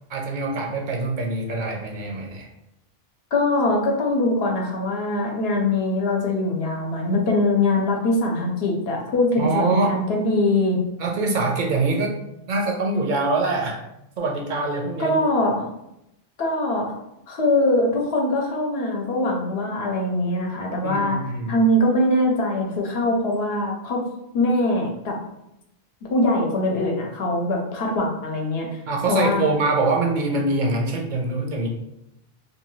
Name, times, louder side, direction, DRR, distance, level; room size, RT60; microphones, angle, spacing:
voice 1, 0.1-2.5 9.4-10.0 11.0-12.2 12.5-13.8 14.2-15.2 20.8-21.5 28.9-31.7, right 3 dB, 60° right, 0 dB, 0.6 m, -24 dB
voice 2, 3.3-10.8 15.0-15.6 16.4-16.9 17.3-24.0 24.3-25.2 26.1-28.8 29.1-29.4, left 1 dB, 80° left, 0 dB, 0.8 m, -22 dB
2.7 x 2.2 x 3.0 m, 0.85 s
omnidirectional pair, 1.0 m